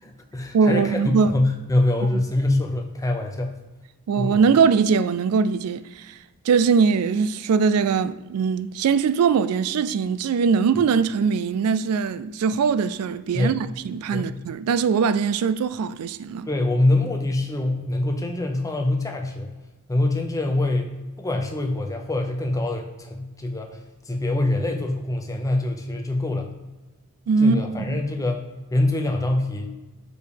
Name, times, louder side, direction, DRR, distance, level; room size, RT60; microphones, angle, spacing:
voice 1, 0.0-3.5 4.2-4.4 13.3-13.7 14.1-14.4 16.5-19.5 19.9-20.9 21.2-23.8 24.1-26.5 27.4-28.4 28.7-29.7, left 2 dB, 15° left, 0.7 m, -24 dB
voice 2, 0.5-1.4 2.1-2.2 4.1-6.1 6.5-16.5 27.3-27.6 27.9-28.0, right 5 dB, 90° right, 0.3 m, -21 dB
4.9 x 4.6 x 5.0 m
head